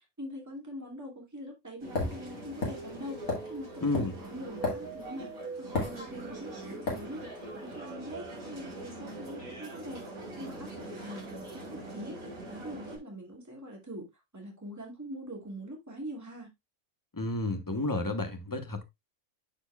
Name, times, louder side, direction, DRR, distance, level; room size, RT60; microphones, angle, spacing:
voice 1, 0.0-7.2 7.5-10.1 10.4-12.2 12.5-16.5, equal, 10° right, 2.1 m, -43 dB
sound 1, 1.8-13.0, right 2 dB, 80° right, 3.2 m, -42 dB
sound 2, 2.0-5.2 5.7-6.4 6.9-7.1, left 2 dB, 90° left, 2.8 m, -33 dB
voice 2, 3.8-4.1 17.1-18.8, left 2 dB, 15° left, 0.8 m, -31 dB
12.5 x 4.4 x 2.3 m
omnidirectional pair, 1.5 m